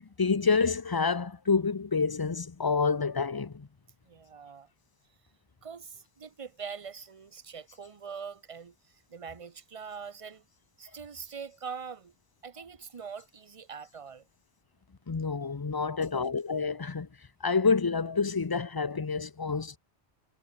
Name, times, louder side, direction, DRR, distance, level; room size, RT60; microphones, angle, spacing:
voice 1, 0.0-3.7 15.1-17.1 17.4-19.8, left 5 dB, 25° left, 0.6 m, -28 dB
voice 2, 4.0-4.7 5.6-10.4 10.8-12.1 12.4-14.3, right 6 dB, 35° right, 0.8 m, -43 dB
omnidirectional pair, 1.1 m